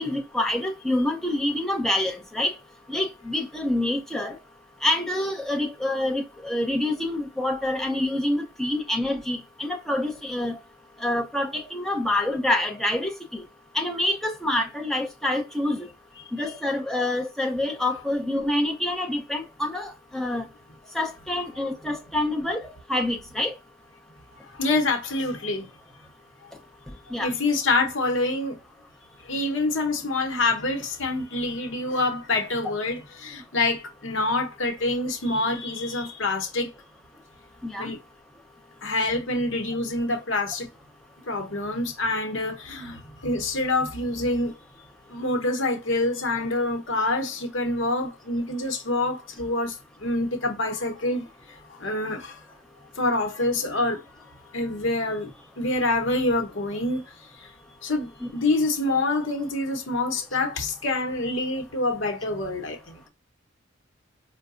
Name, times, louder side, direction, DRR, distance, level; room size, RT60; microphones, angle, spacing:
voice 1, 0.0-2.5 2.9-4.4 4.8-10.6 11.0-13.4 13.7-15.9 16.3-20.5 20.9-22.6 22.9-23.5 27.1-27.3 37.6-37.9 58.2-58.3, left 1 dB, ahead, 0.6 m, -27 dB
voice 2, 24.5-25.7 27.2-28.6 29.2-36.7 37.8-38.0 38.8-40.7 41.3-44.5 45.1-51.2 51.5-52.4 53.0-54.0 54.5-55.3 55.6-57.0 57.4-57.5 57.8-63.0, left 2 dB, 70° left, 0.9 m, -26 dB
4.7 x 2.1 x 2.4 m
head